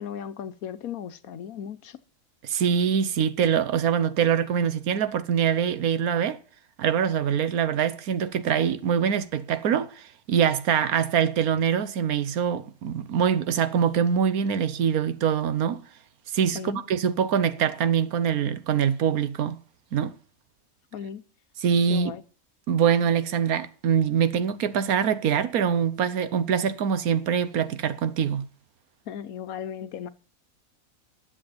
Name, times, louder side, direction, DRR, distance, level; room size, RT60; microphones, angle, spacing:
voice 1, 0.0-2.0 16.5-16.8 20.9-21.2 21.9-22.2 29.1-30.1, left 8 dB, 75° left, 1.3 m, -36 dB
voice 2, 2.4-6.4 6.8-15.8 16.3-19.6 19.9-20.1 21.6-22.1 22.7-28.5, right 8 dB, 80° right, 1.3 m, -24 dB
10.5 x 7.6 x 8.6 m
omnidirectional pair, 1.5 m